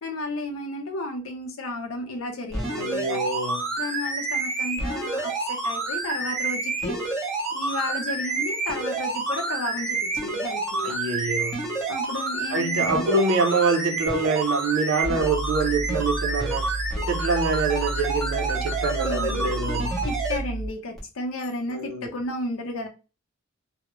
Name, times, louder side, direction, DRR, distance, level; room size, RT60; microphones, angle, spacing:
voice 1, 0.0-3.2 3.8-7.1 7.5-11.0 11.9-13.0 19.0-19.5 20.0-22.9, left 2 dB, 85° left, 0.6 m, -33 dB
sound 1, 2.5-20.4 21.0-21.1, right 3 dB, ahead, 0.8 m, -29 dB
voice 2, 2.8-3.7 10.8-11.7 12.5-16.8 17.1-20.0 21.7-22.1, right 3 dB, 80° right, 0.5 m, -25 dB
sound 2, 15.2-20.7, right 3 dB, 35° left, 0.4 m, -31 dB
2.3 x 2.0 x 2.9 m
head